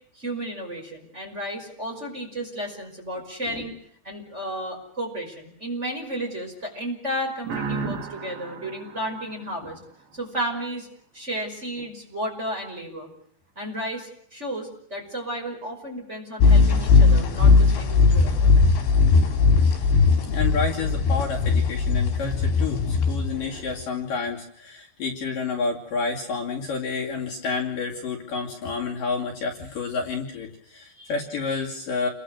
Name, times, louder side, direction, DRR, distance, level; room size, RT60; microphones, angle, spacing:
voice 1, 0.1-3.7 4.0-9.8 10.1-10.9 11.1-13.1 13.6-18.5 31.0-31.1, right 1 dB, 15° right, 1 dB, 5.5 m, -33 dB
sound 1, 7.4-10.1, right 4 dB, 85° right, 5.5 m, -34 dB
sound 2, 16.4-23.8, left 4 dB, 80° left, 5.9 m, -18 dB
voice 2, 20.3-32.1, left 4 dB, 55° left, 0 dB, 4.0 m, -30 dB
29.5 x 22.5 x 6.6 m, 0.68 s
omnidirectional pair, 5.1 m